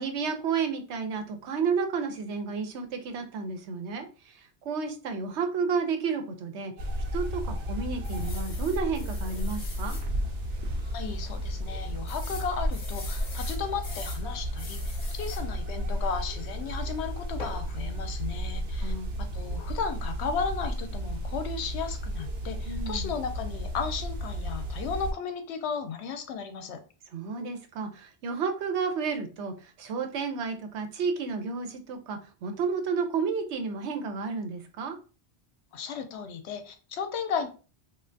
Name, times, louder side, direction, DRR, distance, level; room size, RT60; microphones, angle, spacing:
voice 1, 0.0-6.7 7.1-10.0 18.8-19.1 22.6-23.1 27.1-35.0, right 5 dB, 85° right, 6 dB, 0.9 m, -31 dB
sound 1, 6.8-25.1, equal, 60° right, 0.7 m, -33 dB
sound 2, 8.0-10.1 10.6-10.7 11.0-11.1 12.1-14.2 14.6-15.5 17.4-17.6, left 3 dB, 55° left, 0.8 m, -44 dB
voice 2, 10.8-26.8 35.7-37.5, left 6 dB, 80° left, 7 dB, 0.9 m, -35 dB
3.2 x 2.4 x 2.5 m, 0.35 s
omnidirectional pair, 1.1 m